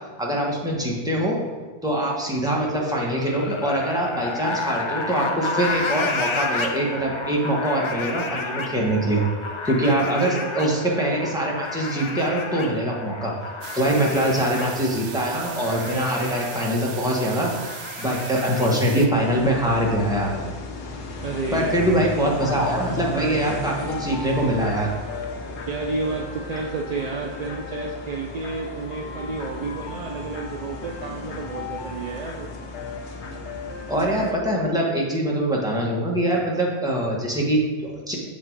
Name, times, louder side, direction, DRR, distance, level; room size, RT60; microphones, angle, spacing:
voice 1, 0.2-1.4 1.8-9.2 9.6-13.3 13.7-17.5 18.0-20.4 21.5-24.9 33.9-38.2, right 1 dB, 5° right, -3 dB, 1.1 m, -23 dB
sound 1, 2.5-19.5, left 3 dB, 45° left, 0.4 m, -32 dB
voice 2, 9.9-10.6 21.2-22.3 25.7-32.7, right 4 dB, 60° right, 1 dB, 0.4 m, -31 dB
sound 2, 13.6-19.1, right 7 dB, 85° right, 0.9 m, -38 dB
sound 3, 19.1-34.3, left 3 dB, 75° left, 1.1 m, -34 dB
6.6 x 4.2 x 4.5 m, 1.3 s
omnidirectional pair, 1.2 m